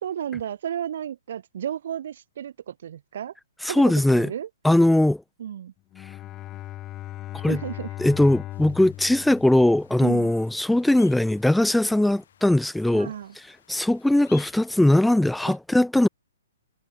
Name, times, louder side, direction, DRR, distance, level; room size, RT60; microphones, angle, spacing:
voice 1, 0.0-3.3 3.7-4.5 5.4-5.7 7.5-7.9 10.0-10.3 12.9-13.3 15.5-15.6, right 9 dB, 60° right, 0.8 m, -33 dB
voice 2, 3.6-4.3 4.6-5.2 7.3-7.6 8.0-13.1 13.7-16.1, left 1 dB, ahead, 0.3 m, -20 dB
Bowed string instrument, 5.9-10.3, left 14 dB, 20° left, 0.9 m, -38 dB
sound 1, 8.5-15.2, left 9 dB, 60° left, 6.9 m, -54 dB
hypercardioid pair, 145°, 0 cm